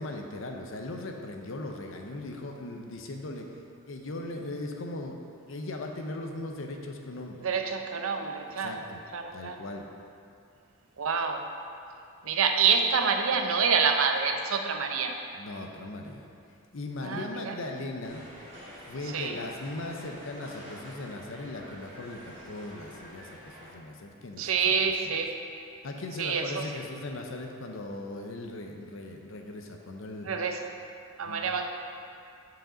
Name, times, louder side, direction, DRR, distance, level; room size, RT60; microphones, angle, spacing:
voice 1, 0.0-3.5 3.9-5.2 5.5-7.4 8.6-9.0 9.3-9.9 15.4-16.3 16.7-18.3 18.9-23.3 23.6-24.7 25.8-30.3 31.3-31.4, left 2 dB, 65° left, 3 dB, 0.7 m, -38 dB
voice 2, 7.4-8.9 9.1-9.6 11.0-11.5 12.2-15.2 17.0-17.6 19.0-19.4 24.4-25.4 26.2-26.7 30.2-30.7 31.2-31.7, right 5 dB, 75° right, 5 dB, 0.6 m, -27 dB
sound 1, 18.0-23.7, equal, 25° right, 1.7 m, -47 dB
6.3 x 4.9 x 5.0 m, 2.6 s
head